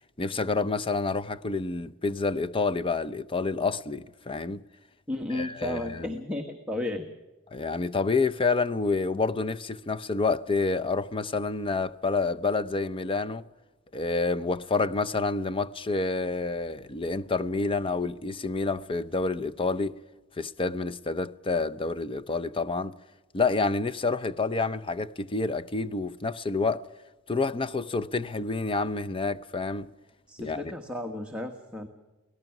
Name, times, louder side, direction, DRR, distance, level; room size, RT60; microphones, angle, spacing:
voice 1, 0.2-4.6 5.3-6.1 7.5-13.4 13.9-19.9 20.4-22.9 23.3-26.9 27.3-29.9 30.4-30.7, left 3 dB, 25° left, 0.6 m, -28 dB
voice 2, 5.1-7.1 30.3-31.9, left 1 dB, 5° right, 1.3 m, -33 dB
24.5 x 18.0 x 6.0 m
head